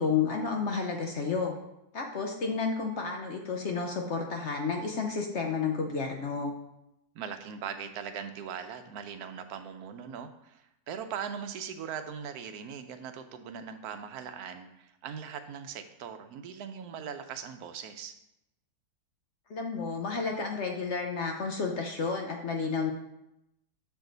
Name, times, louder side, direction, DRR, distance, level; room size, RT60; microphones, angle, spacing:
voice 1, 0.0-1.5 1.9-6.5 19.5-22.9, left 5 dB, 55° left, 2 dB, 0.9 m, -31 dB
voice 2, 7.1-18.1, right 7 dB, 80° right, 8 dB, 1.1 m, -40 dB
6.6 x 4.7 x 3.9 m, 0.87 s
omnidirectional pair, 1.6 m